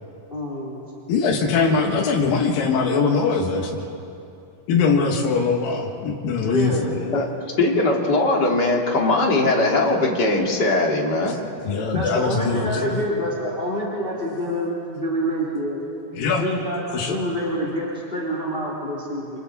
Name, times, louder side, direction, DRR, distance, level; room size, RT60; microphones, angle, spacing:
voice 1, 0.3-0.8 6.4-6.9 11.9-15.8 16.4-19.4, equal, 15° left, -5 dB, 3.9 m, -27 dB
voice 2, 1.1-3.8 4.7-7.2 11.6-12.9 16.1-16.4 16.9-17.2, left 5 dB, 80° left, 0 dB, 3.3 m, -22 dB
voice 3, 7.6-11.4, left 2 dB, 30° left, -1 dB, 2.5 m, -20 dB
29.0 x 27.5 x 4.2 m, 2.6 s
omnidirectional pair, 4.0 m